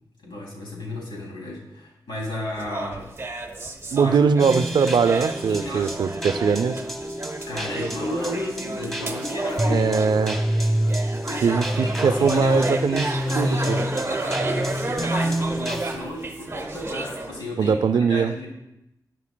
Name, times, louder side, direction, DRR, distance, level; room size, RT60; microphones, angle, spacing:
voice 1, 0.2-3.1 3.9-4.2 5.5-6.0 7.5-9.9 11.3-18.5, left 1 dB, 90° left, -3 dB, 2.7 m, -34 dB
sound 1, 2.5-17.4, right 2 dB, 35° right, 0.7 m, -32 dB
voice 2, 3.9-6.8 9.7-10.4 11.4-13.1 13.4-13.8 17.6-18.3, right 5 dB, 85° right, 11 dB, 0.4 m, -21 dB
sound 2, 4.4-16.0, equal, 5° left, 1.1 m, -28 dB
10.5 x 9.8 x 2.2 m, 0.87 s
wide cardioid pair, 85°, 7 cm